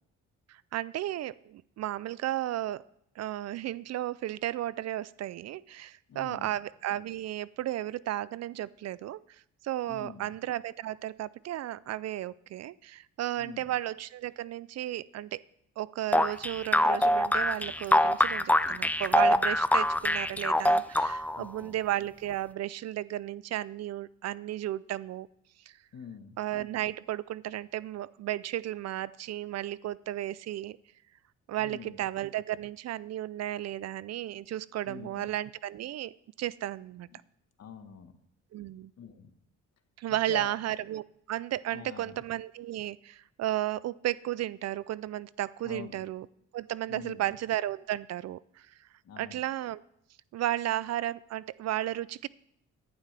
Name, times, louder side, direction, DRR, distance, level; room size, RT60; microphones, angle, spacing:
voice 1, 0.5-2.8 3.2-9.2 9.6-15.4 15.8-25.3 25.7-25.8 26.4-30.8 31.5-37.1 38.5-38.9 40.0-46.3 46.5-48.9 49.2-49.8 50.3-52.3, right 13 dB, 60° right, 20 dB, 0.4 m, -34 dB
voice 2, 6.1-6.6 9.9-10.4 13.4-13.7 21.3-21.8 25.9-26.4 31.6-32.0 34.9-35.3 37.1-37.2 37.6-38.1 39.0-39.3 40.1-40.5 41.7-42.2 45.6-46.0 46.9-47.3 49.0-49.4, left 7 dB, 55° left, 8 dB, 1.4 m, -45 dB
sound 1, 16.1-21.4, left 1 dB, 5° left, 0.5 m, -24 dB
14.5 x 11.0 x 3.4 m, 0.74 s
cardioid pair, 90°, 30 cm